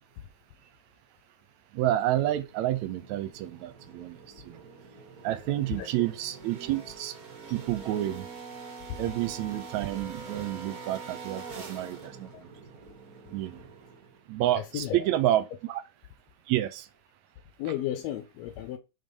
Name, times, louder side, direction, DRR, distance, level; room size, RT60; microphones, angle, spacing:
voice 1, 1.7-4.2 4.4-4.6 5.2-7.1 7.5-8.3 9.0-12.5 13.3-13.7 14.3-15.8 16.5-16.9, right 13 dB, 80° right, 1.9 m, -29 dB
sound 1, 2.4-14.3, right 4 dB, 55° right, 1.0 m, -45 dB
voice 2, 14.6-15.1 17.6-18.8, left 12 dB, 75° left, 1.7 m, -34 dB
5.3 x 3.8 x 5.4 m
omnidirectional pair, 3.5 m